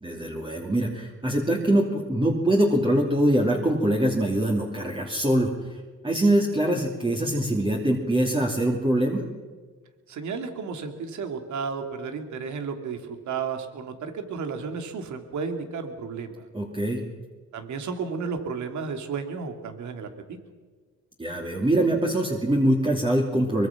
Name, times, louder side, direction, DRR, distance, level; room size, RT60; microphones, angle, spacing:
voice 1, 0.0-9.2 16.5-17.0 21.2-23.7, right 1 dB, 15° right, -1 dB, 2.8 m, -23 dB
voice 2, 10.1-16.5 17.5-20.4, right 5 dB, 70° right, 6 dB, 2.8 m, -33 dB
23.5 x 22.5 x 6.0 m, 1.4 s
cardioid pair, 90°, 30 cm